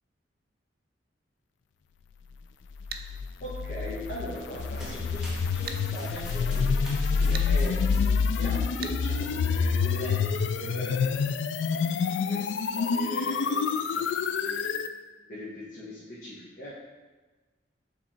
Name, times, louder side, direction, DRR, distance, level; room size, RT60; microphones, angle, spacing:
sound 1, 2.8-14.9, left 5 dB, 85° left, 0.3 m, -27 dB
sound 2, 2.9-3.1 5.7-5.8 7.3-7.5 8.8-9.0, right 7 dB, 55° right, 0.4 m, -37 dB
voice 1, 3.4-14.7 15.2-16.7, equal, 50° left, -9 dB, 1.3 m, -41 dB
sound 3, 4.3-10.8, equal, 5° right, 1.2 m, -47 dB
7.3 x 3.5 x 4.4 m, 1.3 s
head